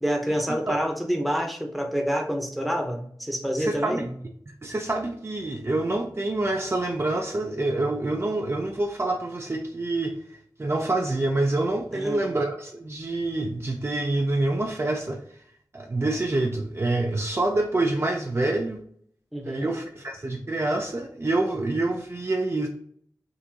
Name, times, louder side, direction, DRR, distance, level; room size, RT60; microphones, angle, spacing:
voice 1, 0.0-4.1 11.9-12.2 19.3-19.7, equal, ahead, 2 dB, 0.8 m, -27 dB
voice 2, 3.6-4.1 4.6-10.2 10.6-15.2 15.7-18.8 19.5-22.7, right 2 dB, 35° right, 2 dB, 0.4 m, -26 dB
3.7 x 2.6 x 2.8 m, 0.64 s
wide cardioid pair, 45°, 8 cm